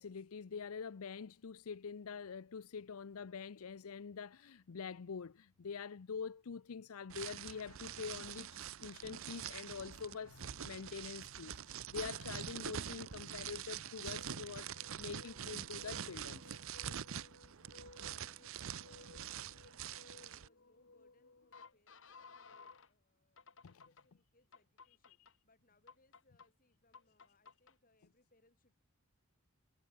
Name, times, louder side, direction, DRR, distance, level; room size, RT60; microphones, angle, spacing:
voice 1, 0.0-16.6 23.6-23.8 25.1-25.2, left 6 dB, 80° left, 0.6 m, -46 dB
sound 1, 7.1-20.5, right 9 dB, 70° right, 0.7 m, -45 dB
sound 2, 13.9-22.9 23.4-24.0 24.5-25.3 25.9-26.5 26.9-27.7, left 4 dB, 60° left, 1.5 m, -59 dB
voice 2, 18.5-23.4 23.7-25.2 25.4-28.8, left 2 dB, 40° left, 6.1 m, -73 dB
head